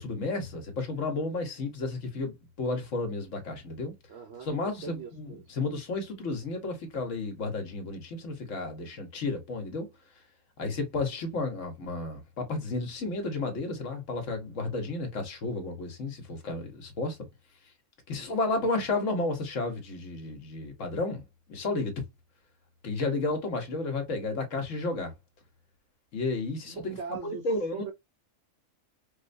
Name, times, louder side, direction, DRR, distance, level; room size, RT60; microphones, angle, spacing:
voice 1, 0.0-3.9 4.4-9.9 10.6-17.2 18.1-21.2 21.5-22.0 22.8-25.1 26.1-27.0 27.2-27.9, left 3 dB, 65° left, 1.4 m, -32 dB
voice 2, 4.1-5.4 18.2-18.7 26.6-27.4 27.7-27.9, right 5 dB, 60° right, 1.0 m, -41 dB
4.5 x 2.1 x 2.5 m
omnidirectional pair, 1.4 m